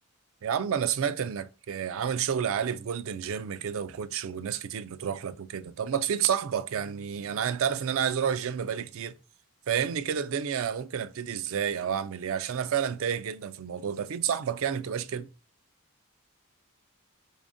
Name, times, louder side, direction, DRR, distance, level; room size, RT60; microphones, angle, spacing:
voice 1, 0.4-9.1 9.7-15.3, right 8 dB, 65° right, 0.3 m, -30 dB
3.6 x 3.5 x 2.5 m
head